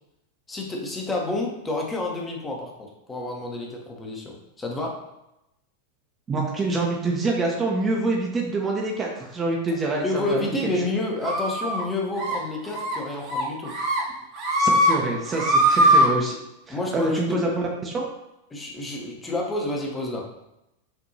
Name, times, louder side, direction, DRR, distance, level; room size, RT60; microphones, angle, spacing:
voice 1, 0.5-5.1 10.0-13.8 16.7-17.6 18.5-20.3, left 2 dB, 15° left, -1 dB, 0.9 m, -29 dB
voice 2, 6.3-10.4 10.8-10.9 14.6-16.4 16.7-17.5 17.8-18.0, right 2 dB, 20° right, -1 dB, 0.7 m, -26 dB
sound 1, 11.2-11.8 12.2-12.4 12.7-13.0 13.3-14.0 14.3-14.9 15.3-16.1, equal, 40° right, 1.0 m, -20 dB
5.9 x 2.6 x 2.8 m, 0.88 s
figure-of-eight pair, 90°, 0 cm